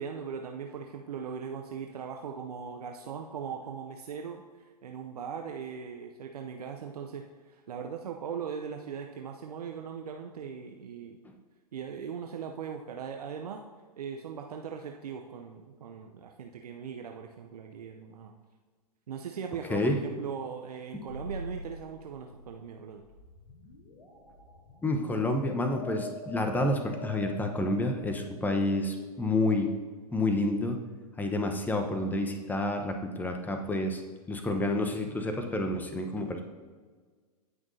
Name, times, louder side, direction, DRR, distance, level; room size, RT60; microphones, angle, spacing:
voice 1, 0.0-11.2 11.7-13.6 14.0-18.3 19.1-23.0, right 7 dB, 75° right, 3 dB, 0.7 m, -39 dB
voice 2, 19.7-20.0 24.8-29.7 30.1-30.8 31.2-34.0 34.3-36.4, left 2 dB, 10° left, 4 dB, 1.0 m, -29 dB
sound 1, 21.1-29.8, left 1 dB, 85° left, 1.8 m, -45 dB
17.0 x 6.0 x 2.8 m, 1.5 s
hypercardioid pair, 105°, 20 cm